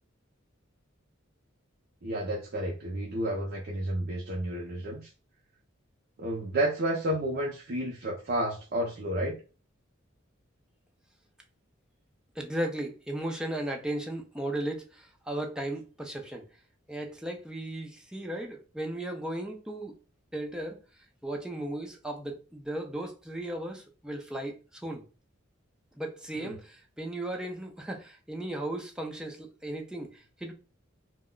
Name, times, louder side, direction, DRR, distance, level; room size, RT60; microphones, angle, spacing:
voice 1, 2.0-5.1 6.2-9.4 26.3-26.6, right 1 dB, 50° right, 0.6 m, -31 dB
voice 2, 12.4-14.8 15.3-16.4 16.9-19.9 20.3-20.8 21.2-24.5 24.8-25.0 26.0-26.6 27.0-30.1 30.4-30.5, right 1 dB, 5° right, 0.5 m, -35 dB
2.2 x 2.1 x 3.7 m
head